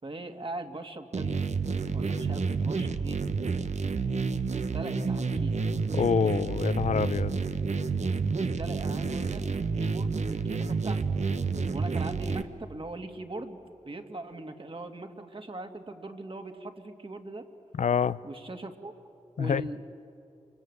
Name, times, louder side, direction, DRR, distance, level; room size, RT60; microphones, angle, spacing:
voice 1, 0.0-1.5 1.9-3.2 4.5-5.6 8.4-11.0 11.7-13.6 13.8-17.5 18.2-18.9 19.4-19.8, right 2 dB, 45° right, 2.4 m, -40 dB
sound 1, 1.1-12.4, right 4 dB, 70° right, 1.2 m, -29 dB
voice 2, 5.9-7.3 17.8-18.2 19.4-19.6, left 7 dB, 75° left, 0.6 m, -26 dB
28.0 x 24.5 x 8.2 m
cardioid pair, 45°, 12 cm